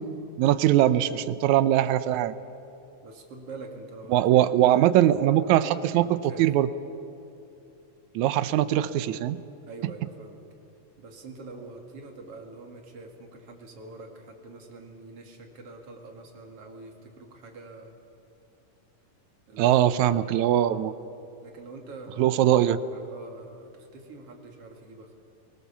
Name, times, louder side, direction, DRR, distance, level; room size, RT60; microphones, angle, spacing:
voice 1, 0.4-2.3 4.1-6.1 6.4-6.7 8.2-9.4 19.6-20.9 22.2-22.8, right 12 dB, 75° right, 14 dB, 1.9 m, -21 dB
voice 2, 3.0-5.0 5.3-6.4 9.7-10.4 11.0-18.0 19.5-19.8 20.3-20.9 21.4-22.4 22.9-25.1, right 3 dB, 50° right, 3 dB, 3.1 m, -45 dB
23.5 x 20.0 x 7.2 m, 2.8 s
omnidirectional pair, 3.6 m